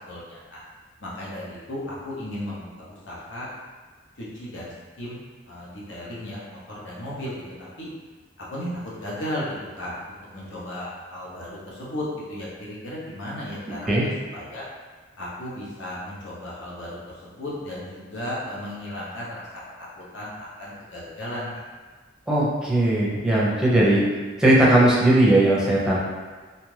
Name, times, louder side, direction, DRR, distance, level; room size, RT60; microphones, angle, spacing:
voice 1, 0.1-0.6 1.0-3.5 4.2-7.9 8.5-14.7 15.2-19.6 20.0-21.6, left 1 dB, 80° left, -6 dB, 0.9 m, -35 dB
voice 2, 22.3-24.0 24.4-26.0, right 1 dB, 5° right, -6 dB, 0.6 m, -18 dB
2.7 x 2.4 x 3.2 m, 1.4 s
head